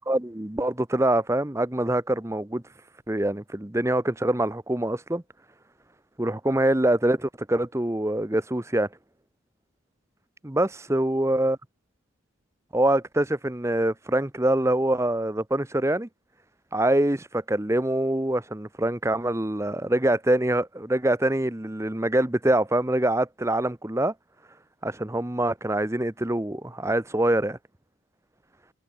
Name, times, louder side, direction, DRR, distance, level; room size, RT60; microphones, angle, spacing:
voice 1, 0.1-2.6 3.1-5.2 6.2-8.9 10.4-11.6 12.7-16.1 16.7-24.1 24.8-27.6, right 1 dB, 15° right, 0.8 m, -24 dB
head